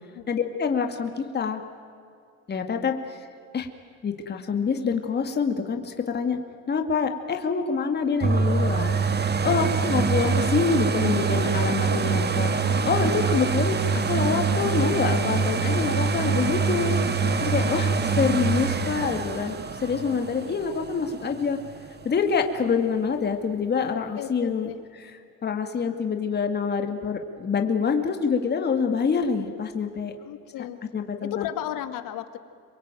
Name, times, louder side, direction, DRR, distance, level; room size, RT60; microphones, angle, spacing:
voice 1, 0.3-1.6 2.5-2.9 3.5-3.7 4.0-6.4 6.7-8.9 9.4-12.5 12.8-13.8 14.1-17.0 17.4-17.9 18.2-21.6 22.1-30.1 30.9-31.5, left 5 dB, 30° left, 5 dB, 2.2 m, -26 dB
sound 1, 8.2-21.9 22.4-22.5, right 5 dB, 30° right, 1.9 m, -25 dB
voice 2, 17.6-18.3 24.1-24.8 30.2-30.9 31.2-32.4, left 12 dB, 65° left, 10 dB, 2.0 m, -35 dB
26.5 x 23.0 x 9.1 m, 2.3 s
cardioid pair, 110°, 35 cm